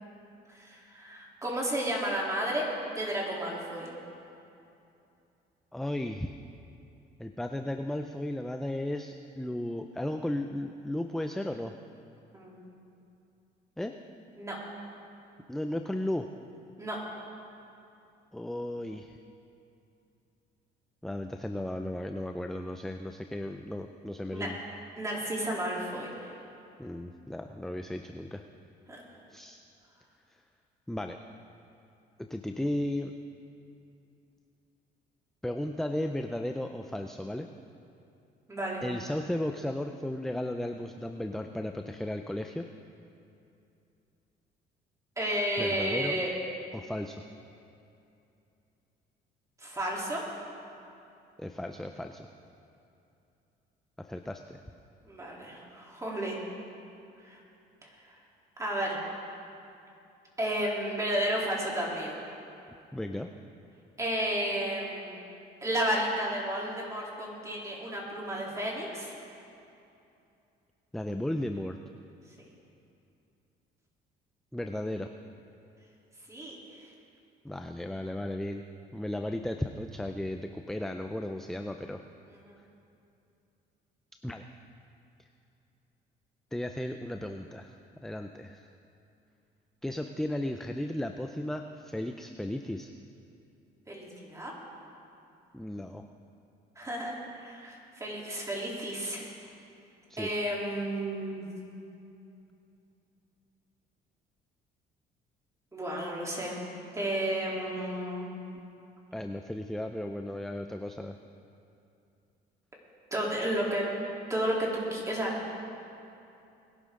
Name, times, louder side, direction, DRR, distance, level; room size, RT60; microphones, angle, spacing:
voice 1, 0.5-3.9 12.3-12.7 14.4-14.6 16.8-17.0 24.3-24.5 25.0-26.3 28.9-29.0 38.5-38.8 45.2-46.3 49.6-50.2 55.0-56.4 57.2-57.4 58.6-59.0 60.4-62.2 64.0-65.3 65.6-69.1 76.3-76.5 82.3-82.5 93.9-94.5 96.7-99.3 100.2-101.5 105.7-106.6 106.9-108.3 113.1-113.9 114.3-115.4, right 1 dB, 20° right, -4 dB, 3.4 m, -32 dB
voice 2, 5.7-6.4 7.2-11.7 13.8-13.9 15.5-16.3 18.3-19.2 21.0-24.6 26.8-28.4 29.3-29.6 30.9-31.2 32.2-33.1 35.4-37.5 38.8-42.7 45.6-46.2 46.7-47.2 51.4-52.3 54.0-54.6 62.9-63.3 70.9-71.8 74.5-75.1 77.4-78.6 78.9-82.0 84.2-84.4 86.5-88.7 89.8-92.9 95.5-96.0 100.1-100.3 109.1-111.2, left 1 dB, ahead, 5 dB, 0.5 m, -35 dB
21.5 x 11.0 x 3.8 m, 2.7 s
cardioid pair, 110°, 17 cm